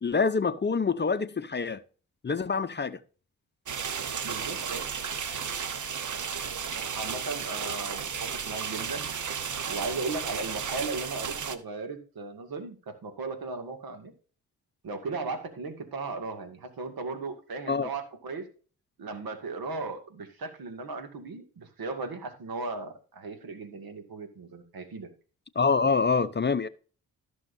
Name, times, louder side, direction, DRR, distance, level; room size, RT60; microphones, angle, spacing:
voice 1, 0.0-1.8 2.2-3.0 17.7-17.9 25.6-26.7, left 5 dB, 25° left, 0.7 m, -26 dB
sound 1, 3.7-11.6, right 6 dB, 50° right, 1.1 m, -34 dB
voice 2, 4.2-4.9 6.9-9.1 9.6-14.1 14.8-18.5 19.0-25.1, right 3 dB, 65° right, 2.3 m, -36 dB
15.0 x 6.4 x 2.7 m
supercardioid pair, 50°, 39 cm